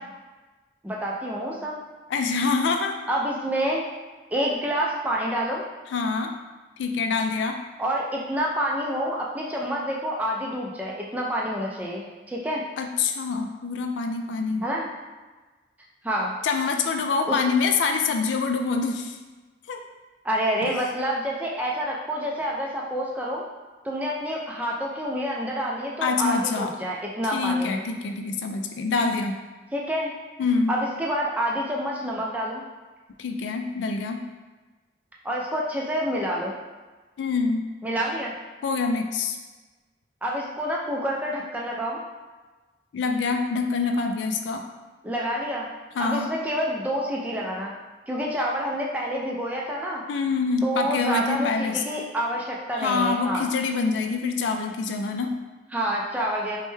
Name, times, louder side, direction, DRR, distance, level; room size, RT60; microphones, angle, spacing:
voice 1, 0.8-1.7 3.1-3.8 4.3-5.7 7.8-12.6 14.6-14.9 16.0-16.3 17.3-17.4 20.2-23.4 23.8-27.7 29.7-30.1 30.7-32.6 35.2-36.6 37.8-38.3 40.2-42.0 45.0-45.7 46.0-47.7 48.1-50.0 50.6-53.5 55.7-56.6, equal, 10° right, -3 dB, 0.3 m, -28 dB
voice 2, 2.1-3.0 5.9-6.3 6.8-7.6 12.8-14.6 16.4-19.2 19.7-19.8 20.6-20.8 26.0-26.7 27.3-29.4 30.4-30.7 33.2-34.2 37.2-37.7 38.6-39.4 42.9-44.6 46.0-46.3 50.1-51.8 52.8-55.4, left 4 dB, 85° left, 5 dB, 0.3 m, -25 dB
3.2 x 2.1 x 3.1 m, 1.3 s
head